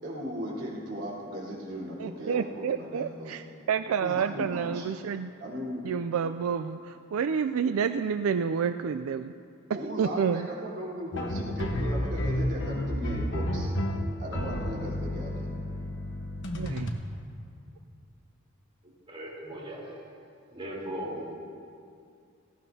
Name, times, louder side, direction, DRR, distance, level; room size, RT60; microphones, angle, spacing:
voice 1, 0.0-3.3 4.0-4.9 5.4-5.8 9.7-13.7 14.2-15.5, equal, 60° right, -6 dB, 4.0 m, -37 dB
voice 2, 2.0-5.3 5.8-9.3 10.0-10.5 16.6-16.9, right 6 dB, 90° right, 10 dB, 0.4 m, -29 dB
sound 1, 11.1-16.9, left 1 dB, 60° left, 1.2 m, -31 dB
voice 3, 19.1-20.0 20.5-21.3, right 1 dB, 25° right, -5 dB, 3.6 m, -38 dB
18.5 x 16.5 x 2.8 m, 2.4 s
head